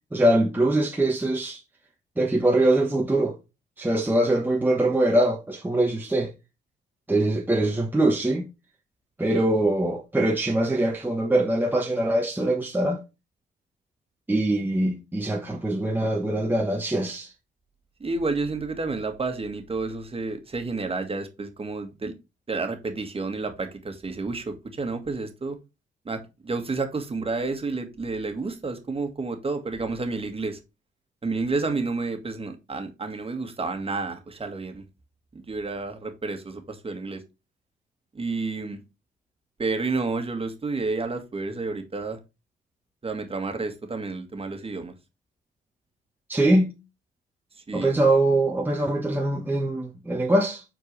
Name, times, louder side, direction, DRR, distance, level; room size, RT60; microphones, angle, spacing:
voice 1, 0.1-1.6 2.2-3.4 3.8-6.3 7.1-8.4 9.2-13.0 14.3-17.3 46.3-46.7 47.7-50.6, right 1 dB, 10° right, 1.1 m, -23 dB
voice 2, 18.0-22.1 22.5-25.6 26.1-30.6 31.2-34.8 35.3-37.2 38.1-38.8 39.6-42.2 43.0-44.9 47.7-48.0, right 3 dB, 30° right, 1.7 m, -30 dB
7.7 x 4.6 x 3.2 m
cardioid pair, 90°, 20 cm